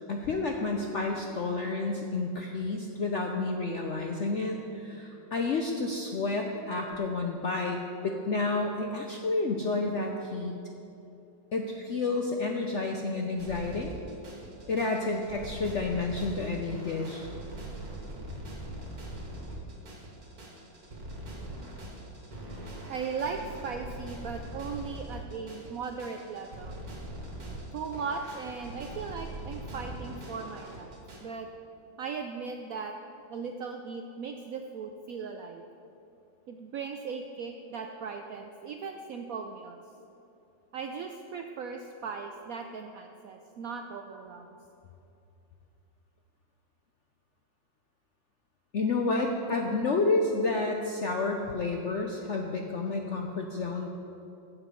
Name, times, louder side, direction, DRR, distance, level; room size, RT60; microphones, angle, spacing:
voice 1, 0.1-10.5 11.5-13.9 14.7-17.3 48.7-53.9, left 3 dB, 65° left, 2 dB, 0.7 m, -30 dB
sound 1, 13.4-31.2, right 1 dB, 55° right, 2.1 m, -42 dB
voice 2, 22.9-26.8 27.7-31.5 32.0-33.0 33.3-35.6 36.5-39.8 40.7-44.6, right 5 dB, 75° right, 5 dB, 0.8 m, -38 dB
15.5 x 6.1 x 5.2 m, 2.8 s
omnidirectional pair, 2.0 m